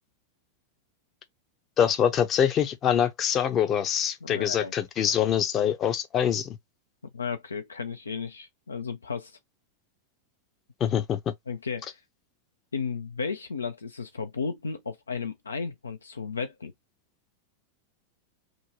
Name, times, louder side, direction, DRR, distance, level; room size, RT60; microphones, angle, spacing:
voice 1, 1.8-6.5 10.8-11.2, left 9 dB, 30° left, 0.6 m, -24 dB
voice 2, 4.2-4.7 5.0-5.1 7.1-9.4 11.5-12.0 12.7-16.7, left 5 dB, 75° left, 0.3 m, -34 dB
2.6 x 2.1 x 3.0 m
figure-of-eight pair, 90°, 0 cm